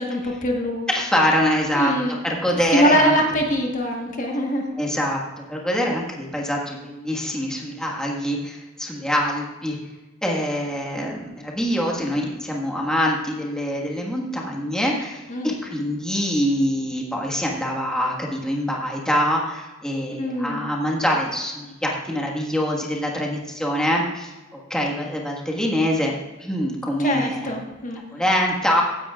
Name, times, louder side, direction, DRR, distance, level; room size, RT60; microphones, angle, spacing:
voice 1, 0.0-0.9 1.7-2.2 2.7-4.7 15.3-15.5 20.2-20.7 27.0-28.1, equal, 40° left, 1 dB, 1.3 m, -23 dB
voice 2, 0.9-3.2 4.8-5.2 5.5-9.8 10.2-27.5 28.1-28.8, equal, 5° left, -2 dB, 1.5 m, -24 dB
16.0 x 10.0 x 2.4 m, 1.1 s
head